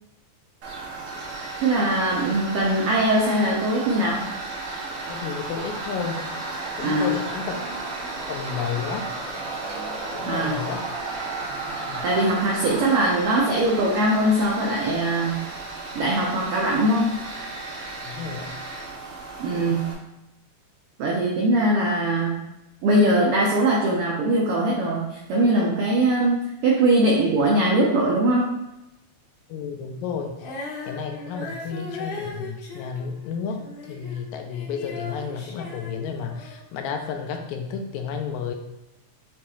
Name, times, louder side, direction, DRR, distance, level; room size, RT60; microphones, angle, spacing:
Tools, 0.6-19.9, right 3 dB, 65° right, 1.6 m, -34 dB
voice 1, 1.6-4.3 6.8-7.1 10.3-10.5 12.0-15.5 15.9-17.2 19.4-20.0 21.0-22.4 22.8-28.5, right 1 dB, 85° right, -3 dB, 1.2 m, -21 dB
voice 2, 5.1-6.3 6.8-7.6 8.3-9.1 10.1-10.9 11.8-12.0 18.1-18.6 29.5-30.5 30.8-38.5, left 6 dB, 85° left, 4 dB, 1.9 m, -32 dB
Female singing, 30.4-34.2 34.5-36.6, left 3 dB, 65° left, 1.6 m, -37 dB
7.0 x 2.9 x 2.4 m, 0.90 s
omnidirectional pair, 3.3 m